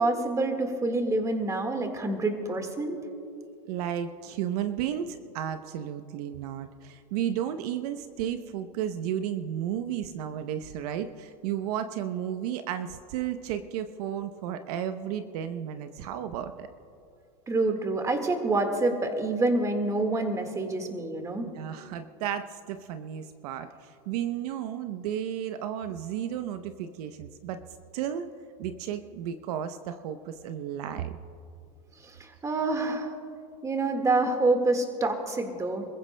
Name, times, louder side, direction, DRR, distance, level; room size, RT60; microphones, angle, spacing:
voice 1, 0.0-3.0 17.5-21.5 32.0-33.1 33.6-35.9, right 2 dB, 15° right, 5 dB, 1.7 m, -27 dB
voice 2, 3.6-16.7 21.5-27.6 27.9-28.3 28.6-31.2, right 10 dB, 65° right, 9 dB, 0.8 m, -33 dB
28.0 x 15.0 x 2.2 m, 2.5 s
supercardioid pair, 125°, 21 cm